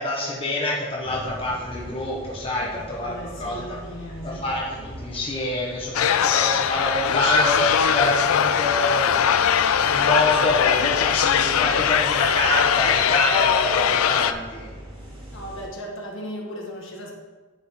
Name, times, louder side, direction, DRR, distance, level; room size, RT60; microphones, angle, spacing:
voice 1, 0.0-3.8 4.4-4.6 5.0-14.7, left 1 dB, 25° left, -4 dB, 1.1 m, -26 dB
sound 1, 1.0-15.7, equal, 30° right, 2.4 m, -40 dB
voice 2, 2.5-4.6 15.3-17.1, equal, 65° left, -1 dB, 1.7 m, -37 dB
sound 2, 5.9-14.3, left 8 dB, 90° left, 0.4 m, -21 dB
10.0 x 5.1 x 4.2 m, 1.3 s
head